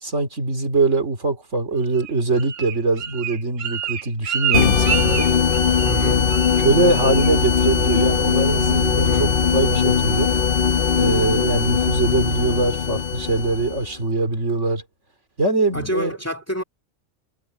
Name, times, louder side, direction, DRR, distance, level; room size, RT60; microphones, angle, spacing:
voice 1, 0.0-5.3 6.1-6.2 6.6-10.3 10.9-14.8 15.4-16.2, right 3 dB, 70° right, 3.6 m, -22 dB
Bird, 1.9-6.0 6.3-6.7 6.9-7.3 7.6-8.0 8.4-8.5, right 9 dB, 90° right, 1.4 m, -28 dB
sound 1, 4.5-13.9, left 6 dB, 50° left, 1.1 m, -20 dB
voice 2, 5.8-6.2 9.0-9.4 15.7-16.6, equal, 10° left, 2.3 m, -28 dB
omnidirectional pair, 1.3 m